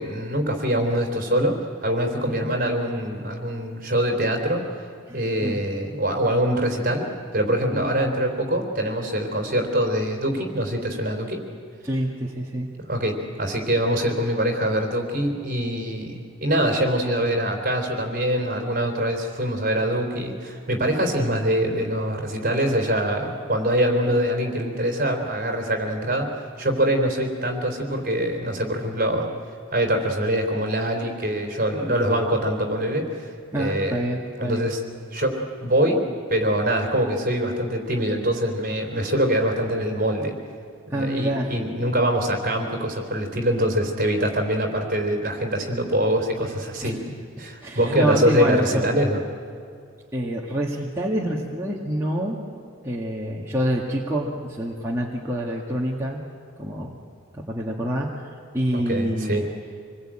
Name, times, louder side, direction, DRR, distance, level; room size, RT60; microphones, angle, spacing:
voice 1, 0.0-4.6 5.1-7.1 7.3-11.4 12.8-29.3 29.7-33.1 33.6-34.0 34.4-34.8 35.1-36.0 36.3-40.3 40.9-47.0 47.4-49.2 58.7-59.5, equal, 40° right, 3 dB, 3.7 m, -24 dB
voice 2, 5.1-5.6 7.7-7.9 11.8-12.7 33.5-34.7 40.9-41.5 46.8-46.9 47.4-48.9 50.1-52.4 52.8-56.2 56.6-56.9 57.3-59.4, right 1 dB, 15° right, -4 dB, 1.9 m, -27 dB
26.5 x 21.0 x 8.9 m, 2.4 s
head